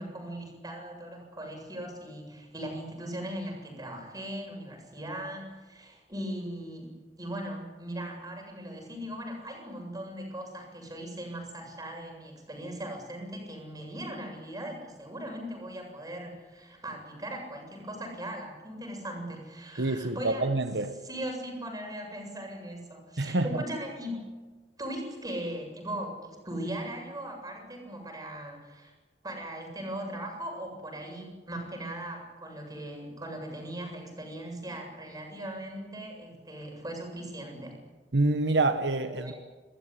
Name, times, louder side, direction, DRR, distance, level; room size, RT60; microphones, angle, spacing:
voice 1, 0.0-6.9 7.2-20.5 21.0-24.2 24.8-28.9 29.2-37.7 39.1-39.3, right 1 dB, 20° right, 7.5 m, -39 dB
voice 2, 19.8-21.0 23.2-23.6 38.1-39.3, right 2 dB, 75° right, 1.3 m, -27 dB
29.0 x 15.0 x 9.9 m
head